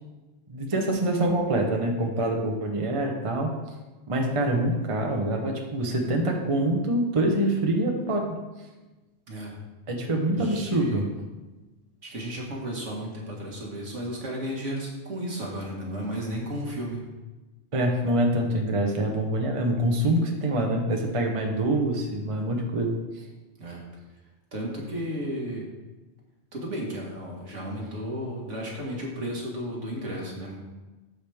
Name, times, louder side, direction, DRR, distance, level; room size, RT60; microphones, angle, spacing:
voice 1, 0.5-3.5 4.1-8.4 9.9-11.1 17.7-22.9, right 1 dB, 30° right, 2 dB, 0.9 m, -25 dB
voice 2, 10.4-11.0 12.0-17.0 23.6-23.8 24.5-25.7 26.5-30.6, equal, 70° right, -2 dB, 2.1 m, -33 dB
13.5 x 5.1 x 3.5 m, 1.2 s
omnidirectional pair, 1.3 m